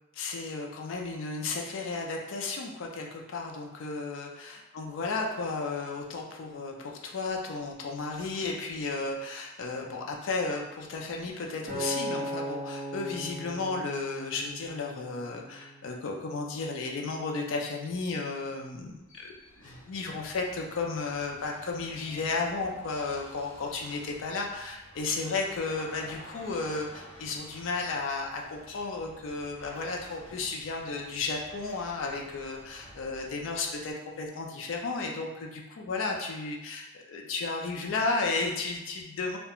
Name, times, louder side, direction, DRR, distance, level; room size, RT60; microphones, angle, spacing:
voice 1, 0.1-4.3 4.8-39.4, left 3 dB, 80° left, 1 dB, 0.4 m, -33 dB
Acoustic guitar, 11.7-16.0 16.6-16.9, right 1 dB, 40° right, 1.0 m, -37 dB
sound 1, 18.8-33.9, equal, 25° left, 1.4 m, -52 dB
2.3 x 2.1 x 2.8 m, 1.0 s
head